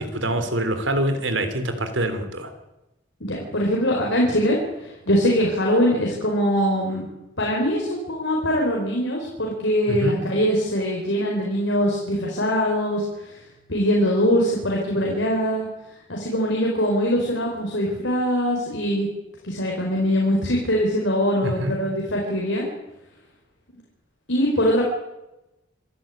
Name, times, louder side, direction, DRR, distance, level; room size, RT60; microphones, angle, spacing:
voice 1, 0.0-2.5 9.9-10.2 21.4-21.7, right 1 dB, 75° right, 9 dB, 3.5 m, -25 dB
voice 2, 3.2-7.0 7.4-13.4 13.7-15.7 16.1-19.1 19.4-22.7 24.3-24.8, equal, 75° left, -2 dB, 4.9 m, -22 dB
27.0 x 13.0 x 9.0 m, 0.95 s
head